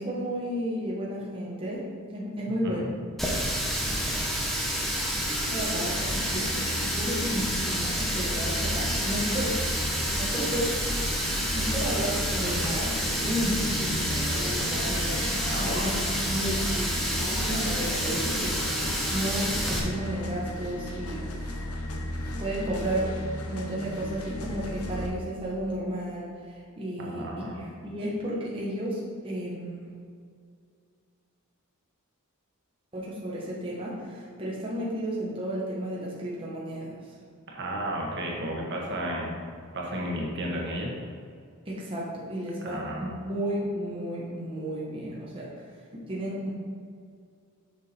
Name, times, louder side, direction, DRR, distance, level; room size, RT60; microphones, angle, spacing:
voice 1, 0.0-2.8 5.5-9.7 10.1-10.7 11.1-11.3 11.5-21.6 22.3-23.1 23.5-29.8 32.9-37.1 41.7-45.5 46.1-46.5, equal, 25° right, -6 dB, 1.1 m, -33 dB
voice 2, 2.5-2.9 15.4-15.9 27.0-27.5 37.5-39.4 39.7-40.9 42.6-43.1, right 1 dB, 50° right, -2 dB, 1.4 m, -33 dB
Water tap faucet, 3.2-19.8, equal, ahead, 1.1 m, -29 dB
sound 1, 5.3-25.1, left 1 dB, 90° left, 1.0 m, -35 dB
6.9 x 6.1 x 4.3 m, 2.2 s
head